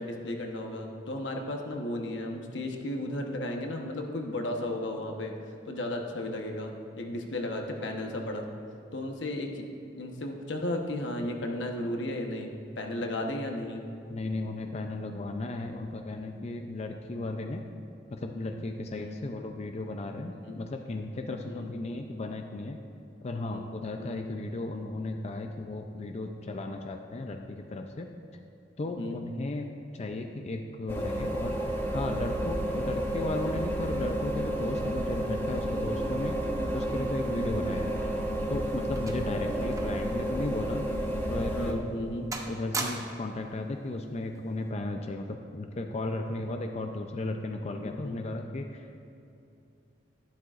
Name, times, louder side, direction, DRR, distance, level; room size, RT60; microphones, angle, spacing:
voice 1, 0.0-5.3 5.7-8.4 8.9-9.6 10.0-13.8 18.9-19.2 20.3-20.6 21.5-21.7 23.5-23.7 24.0-24.2 28.8-29.2 41.4-42.3 47.8-48.1, left 1 dB, 80° left, 2 dB, 1.1 m, -34 dB
voice 2, 14.1-17.6 18.1-22.8 23.2-28.1 28.8-29.7 29.9-31.6 31.9-36.4 36.7-38.0 38.5-40.8 41.3-41.9 42.5-48.9, left 2 dB, 35° left, 4 dB, 0.5 m, -35 dB
sound 1, 30.9-41.7, right 1 dB, 15° left, 1.0 m, -31 dB
sound 2, 38.9-40.1 40.4-40.6 41.2-41.4 41.8-42.1 42.3-43.4 44.4-44.6, right 3 dB, 20° right, 0.7 m, -39 dB
12.0 x 11.5 x 2.5 m, 2.7 s
head